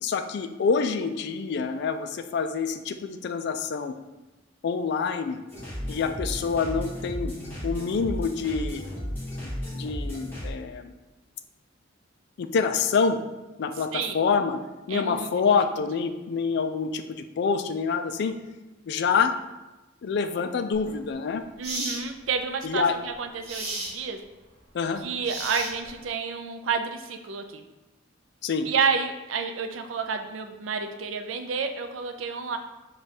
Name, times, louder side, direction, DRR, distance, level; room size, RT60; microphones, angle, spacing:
voice 1, 0.0-3.9 4.6-5.4 5.9-7.3 7.6-8.9 9.4-10.9 12.4-13.2 13.6-14.6 14.9-18.4 18.9-19.3 20.0-21.4 22.6-23.0 24.7-25.0 28.4-28.7, left 5 dB, 60° left, 8 dB, 0.3 m, -26 dB
sound 1, 5.5-10.5, equal, 10° left, 1.4 m, -34 dB
voice 2, 14.9-15.3 21.6-24.2 25.0-27.6 28.7-32.6, right 5 dB, 90° right, 6 dB, 0.5 m, -30 dB
sound 2, 20.7-20.9 21.6-22.0 23.4-24.0 25.2-26.0, right 2 dB, 35° right, 1.1 m, -33 dB
5.0 x 2.3 x 4.1 m, 1.1 s
head